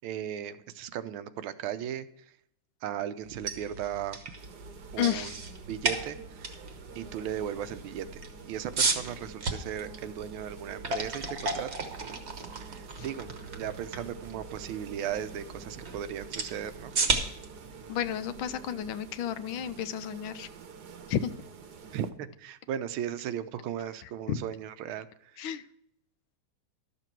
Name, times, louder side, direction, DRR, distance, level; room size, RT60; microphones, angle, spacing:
voice 1, 0.0-2.1 2.8-4.2 4.9-5.4 5.7-6.5 6.9-11.7 12.0-12.1 12.7-13.3 13.6-16.9 21.9-25.1 25.3-25.4, right 10 dB, 85° right, 12 dB, 1.5 m, -36 dB
sound 1, 3.2-19.2, right 3 dB, 40° right, 1.2 m, -35 dB
sound 2, 4.4-22.1, right 5 dB, 60° right, 1.3 m, -48 dB
voice 2, 5.0-5.3 13.0-13.1 17.9-20.5 21.1-21.3 24.0-24.4 25.4-25.6, left 10 dB, 80° left, 13 dB, 1.4 m, -32 dB
12.5 x 6.8 x 4.5 m, 0.78 s
omnidirectional pair, 2.2 m